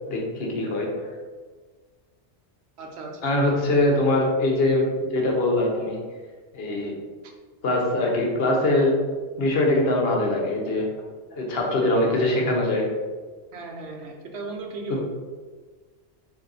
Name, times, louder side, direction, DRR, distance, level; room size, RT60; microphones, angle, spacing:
voice 1, 0.1-1.1 3.2-6.0 6.5-7.0 7.6-9.0 9.4-10.9 11.3-12.9, left 1 dB, 65° left, -1 dB, 1.0 m, -22 dB
voice 2, 2.8-3.2 13.5-15.0, right 3 dB, 70° right, 2 dB, 0.9 m, -36 dB
4.0 x 2.6 x 3.9 m, 1.4 s
omnidirectional pair, 1.1 m